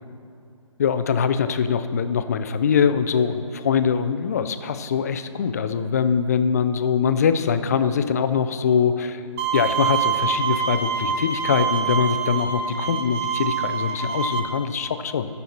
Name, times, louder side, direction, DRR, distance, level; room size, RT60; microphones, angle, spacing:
voice 1, 0.8-9.2 9.5-15.3, left 7 dB, 30° left, 11 dB, 0.4 m, -23 dB
Bowed string instrument, 9.4-14.4, right 7 dB, 25° right, 0.8 m, -25 dB
14.5 x 6.8 x 4.2 m, 2.5 s
figure-of-eight pair, 135°, 17 cm